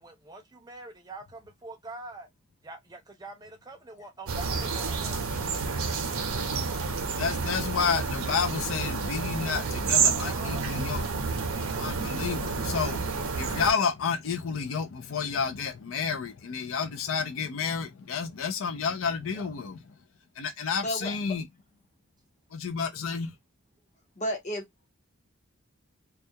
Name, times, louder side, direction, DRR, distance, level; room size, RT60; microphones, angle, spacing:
voice 1, 0.0-2.3 2.6-5.3 10.1-10.7 19.3-19.5, right 2 dB, 20° right, 0.4 m, -44 dB
sound 1, 4.3-13.7, right 5 dB, 80° right, 0.6 m, -29 dB
voice 2, 7.1-11.1 11.5-19.8 20.4-21.4 22.5-23.3, left 6 dB, 65° left, 0.4 m, -30 dB
voice 3, 20.8-21.2 24.2-24.9, equal, 35° left, 0.8 m, -32 dB
2.3 x 2.2 x 2.6 m
head